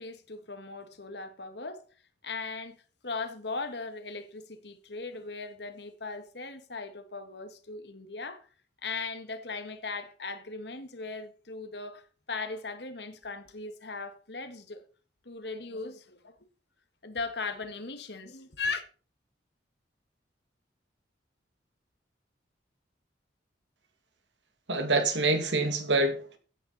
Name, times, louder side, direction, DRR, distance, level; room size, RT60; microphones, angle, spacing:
voice 1, 0.0-1.8 2.2-2.8 3.0-8.5 8.8-12.0 12.3-14.8 15.2-16.4 17.0-18.8, left 3 dB, 65° left, 1.8 m, -38 dB
voice 2, 24.7-26.4, right 2 dB, 80° right, 2.3 m, -26 dB
16.0 x 9.4 x 4.2 m
head